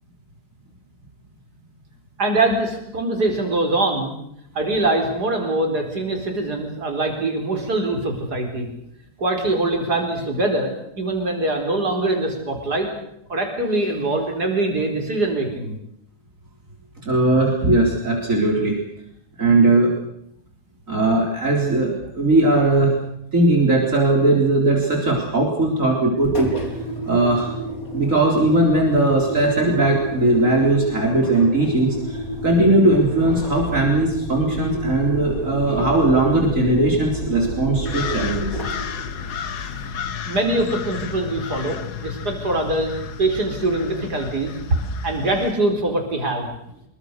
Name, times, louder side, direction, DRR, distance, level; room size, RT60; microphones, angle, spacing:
voice 1, 2.2-4.1 4.5-8.7 9.2-12.9 13.3-15.8 40.3-44.5 45.0-46.5, right 2 dB, 90° right, 3 dB, 4.8 m, -23 dB
voice 2, 17.0-18.8 19.4-19.9 20.9-22.9 23.3-26.6 27.1-27.5 27.9-38.6, right 2 dB, 55° right, 0 dB, 4.4 m, -19 dB
Engine, 26.2-40.2, equal, 60° left, 4.6 m, -30 dB
sound 1, 37.9-45.5, left 7 dB, 80° left, 1.8 m, -32 dB
25.0 x 23.0 x 6.7 m, 0.76 s
omnidirectional pair, 1.7 m